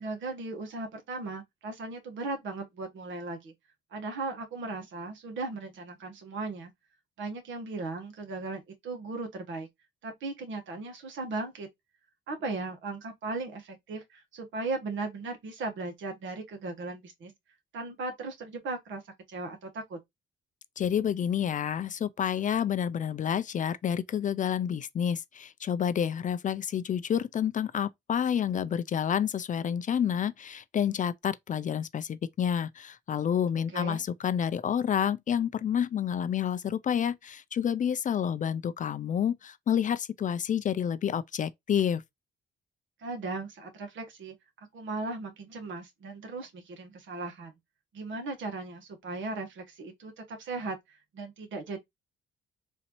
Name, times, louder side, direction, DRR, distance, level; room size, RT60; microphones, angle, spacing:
voice 1, 0.0-3.5 3.9-6.7 7.2-9.7 10.0-11.7 12.3-17.3 17.7-19.0 19.3-20.0 33.7-34.0 43.0-44.3 44.7-47.5 47.9-51.8, right 3 dB, 70° right, 1.4 m, -37 dB
voice 2, 20.8-42.0, left 8 dB, 40° left, 0.4 m, -29 dB
4.0 x 2.7 x 3.0 m
cardioid pair, 90°, 20 cm